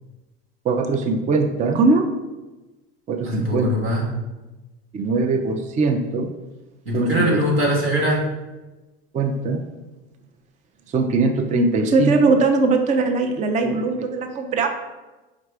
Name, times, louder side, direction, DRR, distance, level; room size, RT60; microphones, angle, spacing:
voice 1, 0.6-2.0 3.1-3.7 4.9-6.3 6.9-7.4 9.1-9.6 10.9-14.7, right 3 dB, 25° right, 5 dB, 0.4 m, -20 dB
voice 2, 3.2-4.0 6.8-8.3, equal, 90° right, -4 dB, 1.5 m, -21 dB
4.8 x 2.2 x 4.6 m, 1.1 s
hypercardioid pair, 85°, 29 cm